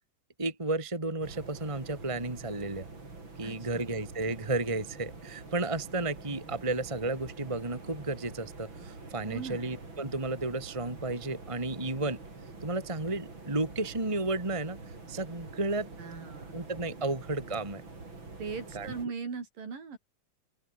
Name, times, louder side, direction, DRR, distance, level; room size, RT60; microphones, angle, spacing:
voice 1, 0.4-2.9 3.4-12.2 12.6-14.8 15.1-15.9 16.5-17.8 18.7-18.9, right 2 dB, 10° right, 3.0 m, -33 dB
sound 1, 1.2-19.1, right 3 dB, 30° right, 5.9 m, -46 dB
voice 2, 3.4-3.9 9.3-9.7 16.0-16.6 18.4-20.0, right 5 dB, 55° right, 6.1 m, -39 dB
open air
omnidirectional pair, 4.7 m